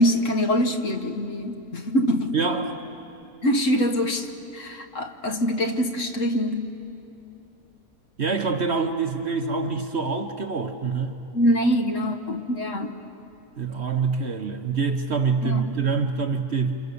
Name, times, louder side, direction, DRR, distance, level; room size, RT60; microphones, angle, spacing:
voice 1, 0.0-2.3 3.4-4.3 4.5-6.7 11.3-13.0 15.4-15.7, equal, 55° left, 5 dB, 1.5 m, -24 dB
voice 2, 2.3-2.8 8.2-11.2 13.6-16.8, right 4 dB, 45° right, 6 dB, 1.1 m, -25 dB
29.0 x 26.5 x 6.9 m, 2.8 s
omnidirectional pair, 1.7 m